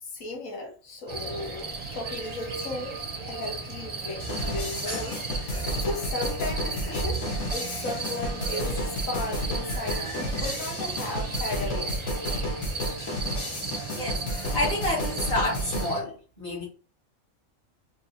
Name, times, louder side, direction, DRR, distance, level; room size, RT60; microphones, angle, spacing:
voice 1, 0.0-3.0 3.3-5.2 5.8-11.9, left 2 dB, 75° left, 1.7 m, -35 dB
sound 1, 1.1-16.0, right 4 dB, 30° right, 0.5 m, -35 dB
sound 2, 4.2-15.9, equal, 55° left, 1.6 m, -32 dB
voice 2, 5.5-5.9 6.9-7.2 13.5-13.6 13.9-16.6, left 1 dB, 30° left, 2.1 m, -30 dB
4.6 x 3.0 x 2.8 m
omnidirectional pair, 1.5 m